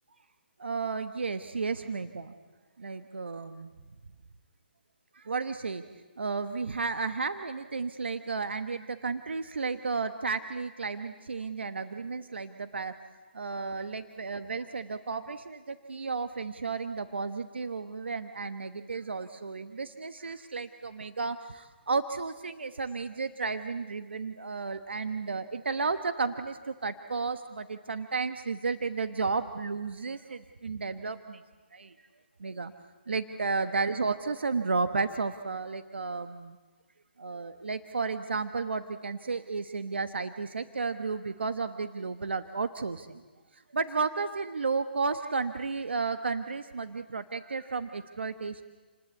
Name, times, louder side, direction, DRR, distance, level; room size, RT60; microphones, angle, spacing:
voice 1, 0.6-2.3 2.8-3.7 5.1-5.8 6.2-12.9 13.3-31.4 31.7-31.9 32.4-32.7 33.1-36.6 37.2-43.2 43.5-48.6, right 4 dB, 75° right, 9 dB, 1.2 m, -33 dB
29.0 x 20.0 x 8.4 m, 1.3 s
figure-of-eight pair, 140°, 6 cm